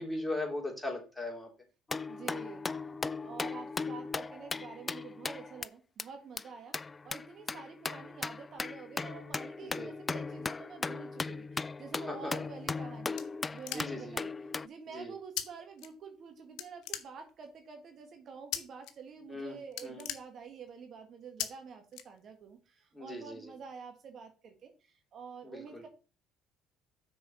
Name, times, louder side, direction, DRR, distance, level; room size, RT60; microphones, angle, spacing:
voice 1, 0.0-1.5 9.6-9.9 12.1-12.3 13.7-14.2 14.9-15.1 19.3-20.0 22.9-23.4 25.4-25.8, left 2 dB, 5° left, 0 dB, 3.4 m, -38 dB
sound 1, 1.9-5.7 6.0-6.1 6.4-6.5 6.7-14.7, left 4 dB, 25° left, 0.4 m, -38 dB
voice 2, 2.1-2.6 3.2-6.8 7.0-13.2 13.5-25.9, right 5 dB, 50° right, 5 dB, 1.7 m, -48 dB
sound 2, 12.5-14.2 15.4-15.5 15.8-16.3 16.6-17.5 18.5-18.9 19.2-19.4 19.7-20.8 21.4-21.5 21.9-22.6, left 12 dB, 70° left, 0.9 m, -39 dB
6.2 x 4.9 x 6.0 m, 0.33 s
hypercardioid pair, 65°, 0 cm